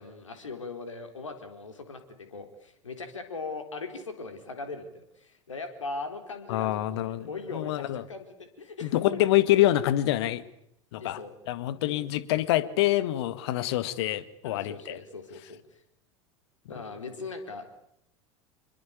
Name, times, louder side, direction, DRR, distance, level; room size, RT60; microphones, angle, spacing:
voice 1, 0.0-9.2 11.0-11.3 11.8-12.0 14.4-15.8 16.7-17.7, left 3 dB, 80° left, 8 dB, 4.2 m, -40 dB
voice 2, 6.5-8.0 8.8-10.4 10.9-11.2 11.5-15.0, left 14 dB, 55° left, 15 dB, 1.9 m, -26 dB
27.5 x 22.5 x 8.4 m, 0.74 s
figure-of-eight pair, 80°, 16 cm